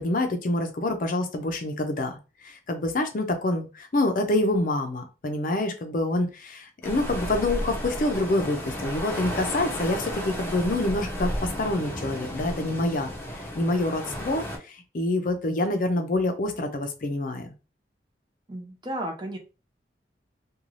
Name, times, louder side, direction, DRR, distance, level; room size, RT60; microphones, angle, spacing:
voice 1, 0.0-2.2 2.4-17.5, left 2 dB, 50° left, 6 dB, 0.5 m, -27 dB
sound 1, 6.8-14.6, equal, 10° left, 0.7 m, -33 dB
voice 2, 18.5-19.4, right 1 dB, 25° right, 2 dB, 0.6 m, -33 dB
2.5 x 2.3 x 3.1 m, 0.31 s
head